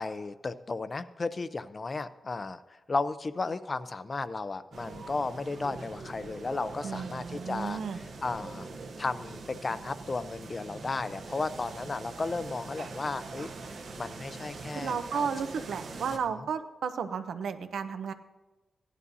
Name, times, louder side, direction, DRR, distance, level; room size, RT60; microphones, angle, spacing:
voice 1, 0.0-7.8 8.2-8.7 9.0-15.3, left 3 dB, 30° left, 14 dB, 0.4 m, -34 dB
sound 1, 4.7-16.2, right 3 dB, 65° right, 1.0 m, -43 dB
voice 2, 6.8-8.0 14.7-18.1, right 6 dB, 85° right, 9 dB, 0.7 m, -33 dB
16.0 x 11.0 x 2.7 m, 1.2 s
wide cardioid pair, 140°, 0 cm